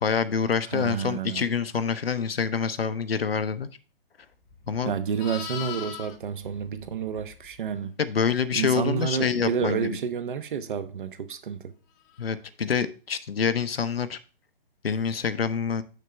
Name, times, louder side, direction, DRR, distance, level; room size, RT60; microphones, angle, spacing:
voice 1, 0.0-3.7 4.7-4.9 8.0-10.0 12.2-14.2 14.8-15.8, left 6 dB, 80° left, 0.8 m, -26 dB
voice 2, 0.7-1.4 4.8-8.0 8.5-11.7, right 7 dB, 55° right, 1.0 m, -30 dB
Livestock farm animals working animals, 4.4-7.7 12.1-12.3, left 9 dB, 20° left, 0.6 m, -41 dB
6.8 x 6.5 x 3.3 m
figure-of-eight pair, 140°, 30 cm